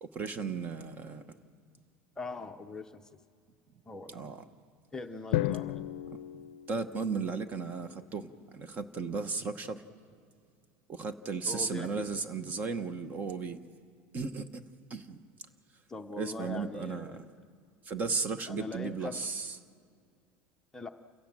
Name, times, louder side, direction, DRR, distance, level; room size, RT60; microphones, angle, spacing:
voice 1, 0.0-1.2 4.1-4.4 6.7-9.8 10.9-13.6 14.1-14.6 14.9-15.2 16.2-17.2 17.8-19.6, right 4 dB, 30° right, 1.0 m, -35 dB
voice 2, 2.2-3.0 3.9-4.2 4.9-5.8 11.5-12.1 15.9-17.3 18.5-19.2 20.7-20.9, left 3 dB, 10° left, 0.7 m, -41 dB
Drum, 5.3-7.5, left 15 dB, 90° left, 0.5 m, -34 dB
28.5 x 17.0 x 7.5 m
supercardioid pair, 150°, 6 cm